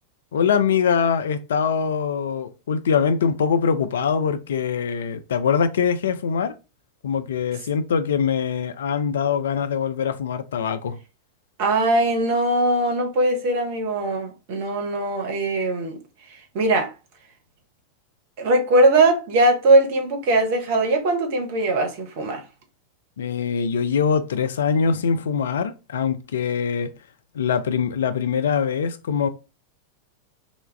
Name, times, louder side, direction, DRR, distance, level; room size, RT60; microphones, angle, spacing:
voice 1, 0.3-6.5 7.0-11.0 23.2-26.9 27.3-29.3, left 6 dB, 65° left, 0.3 m, -23 dB
voice 2, 11.6-16.0 16.3-16.9 18.4-22.4, right 2 dB, 45° right, 0.7 m, -20 dB
2.2 x 2.0 x 3.2 m
figure-of-eight pair, 90°, 0 cm